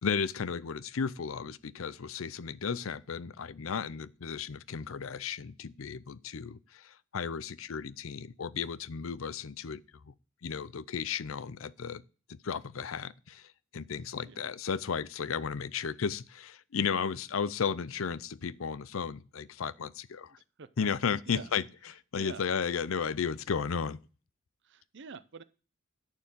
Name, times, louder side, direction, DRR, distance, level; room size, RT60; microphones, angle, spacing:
voice 1, 0.0-10.1 10.4-12.0 12.3-20.3 20.8-21.6 22.1-24.0, left 6 dB, 75° left, 0.6 m, -34 dB
voice 2, 20.3-20.7 21.3-21.5 22.1-22.5 24.6-25.4, right 5 dB, 60° right, 0.7 m, -47 dB
10.5 x 4.6 x 7.5 m
head